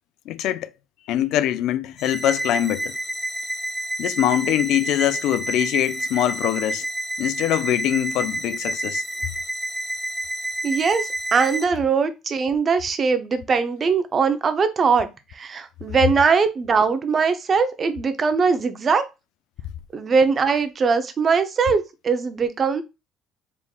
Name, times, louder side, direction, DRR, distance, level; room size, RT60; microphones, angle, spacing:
voice 1, 0.3-0.7 1.1-3.0 4.0-6.9 7.2-9.0, left 12 dB, 75° left, 0.3 m, -23 dB
sound 1, 2.0-11.7, right 1 dB, 5° left, 0.7 m, -29 dB
voice 2, 10.6-15.1 15.3-19.0 19.9-22.8, right 5 dB, 30° right, 0.6 m, -21 dB
4.5 x 3.5 x 2.3 m
cardioid pair, 140°, 0 cm